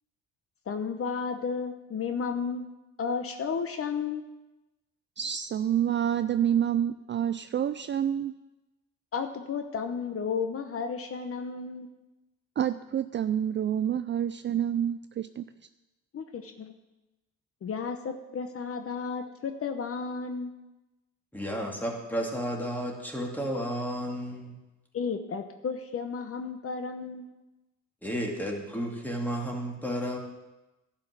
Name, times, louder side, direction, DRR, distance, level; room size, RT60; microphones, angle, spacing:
voice 1, 0.7-2.6 3.0-4.3 9.1-11.9 16.1-16.7 17.6-20.5 24.9-27.3, left 5 dB, 50° left, 7 dB, 0.9 m, -33 dB
voice 2, 5.2-8.3 12.6-15.5, right 9 dB, 40° right, 11 dB, 0.4 m, -28 dB
voice 3, 21.3-24.5 28.0-30.2, equal, 5° left, 0 dB, 2.5 m, -32 dB
11.5 x 5.7 x 8.1 m, 1.0 s
cardioid pair, 90°, 30 cm